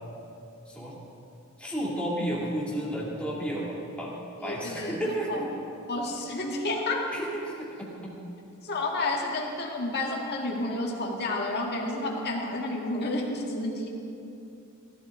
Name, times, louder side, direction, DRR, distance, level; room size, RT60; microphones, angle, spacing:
voice 1, 1.6-4.1 4.4-5.6 7.1-8.1, right 1 dB, 5° left, -6 dB, 2.6 m, -32 dB
voice 2, 4.4-5.4 5.9-7.1 8.6-13.9, left 2 dB, 50° left, -1 dB, 1.8 m, -30 dB
16.0 x 12.5 x 3.7 m, 2.8 s
head